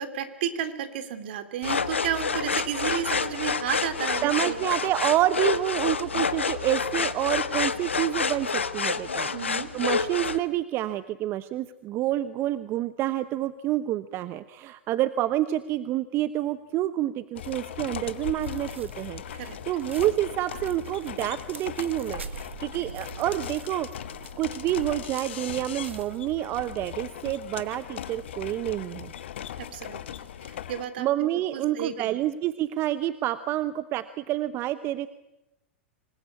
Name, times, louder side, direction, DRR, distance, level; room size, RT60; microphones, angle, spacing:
voice 1, 0.0-4.6 9.3-9.7 19.3-19.6 29.6-30.0 30.4-32.2, right 9 dB, 60° right, 10 dB, 2.9 m, -32 dB
sound 1, 1.6-10.4, left 5 dB, 90° left, 1.3 m, -28 dB
voice 2, 4.2-9.3 9.7-23.9 24.4-29.1 31.0-35.1, right 14 dB, 40° right, 13 dB, 1.0 m, -28 dB
sound 2, 17.3-30.8, left 10 dB, 70° left, 1.5 m, -39 dB
sound 3, 18.4-26.2, right 5 dB, 85° right, 1.6 m, -45 dB
26.5 x 20.0 x 8.5 m, 0.95 s
hypercardioid pair, 105°, 6 cm